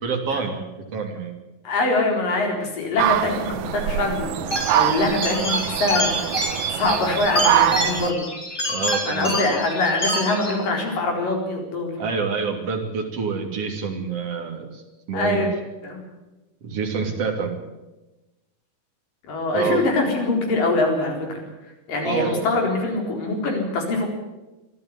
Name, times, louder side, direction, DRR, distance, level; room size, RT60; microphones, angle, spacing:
voice 1, 0.0-0.7 0.9-1.3 8.7-9.5 12.0-14.8 15.1-15.5 16.6-17.5 19.5-19.9 22.0-22.5, right 5 dB, 45° right, 3 dB, 3.8 m, -27 dB
voice 2, 1.6-3.5 3.7-6.3 6.7-8.3 9.1-11.9 15.1-15.5 15.8-16.0 19.3-21.5 21.9-24.1, left 2 dB, 70° left, 2 dB, 6.0 m, -23 dB
sound 1, 3.0-8.1, right 12 dB, 80° right, 2.5 m, -24 dB
sound 2, 4.5-10.5, left 1 dB, 25° left, 4.2 m, -27 dB
23.5 x 13.0 x 9.9 m, 1.1 s
omnidirectional pair, 4.1 m